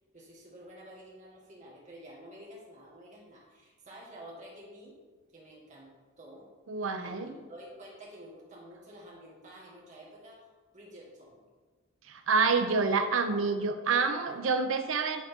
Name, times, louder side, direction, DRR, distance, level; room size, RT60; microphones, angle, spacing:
voice 1, 0.1-5.0 5.3-6.5 7.0-10.5 10.7-11.5 14.3-14.6, equal, 35° right, -4 dB, 1.7 m, -50 dB
voice 2, 6.7-7.4 12.1-15.2, right 4 dB, 70° right, 7 dB, 0.6 m, -28 dB
9.6 x 3.8 x 3.6 m, 1.4 s
head